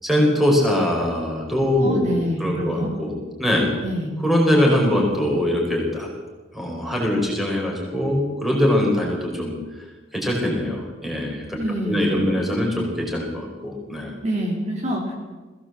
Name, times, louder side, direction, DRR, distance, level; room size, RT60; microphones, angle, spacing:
voice 1, 0.0-3.1 3.4-3.7 4.2-6.1 6.5-9.5 10.1-11.6 11.8-14.1, left 1 dB, ahead, -2 dB, 5.2 m, -22 dB
voice 2, 1.8-2.9 3.8-4.1 11.6-12.3 14.2-15.1, equal, 40° right, -1 dB, 3.8 m, -26 dB
21.0 x 17.0 x 7.8 m, 1.3 s
head